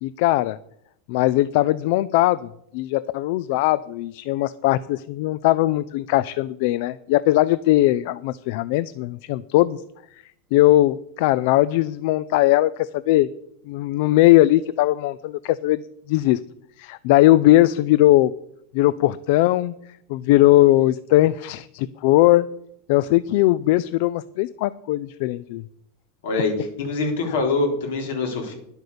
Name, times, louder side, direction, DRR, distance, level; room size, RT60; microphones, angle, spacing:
voice 1, 0.0-0.6 1.1-9.8 10.5-13.3 13.7-15.8 16.1-16.4 16.8-18.3 18.7-19.7 20.1-22.5 22.9-25.6, left 16 dB, 60° left, 17 dB, 0.4 m, -19 dB
voice 2, 26.8-28.5, left 3 dB, 80° left, 3 dB, 3.8 m, -24 dB
11.0 x 8.0 x 6.8 m, 0.75 s
supercardioid pair, 150°, 0 cm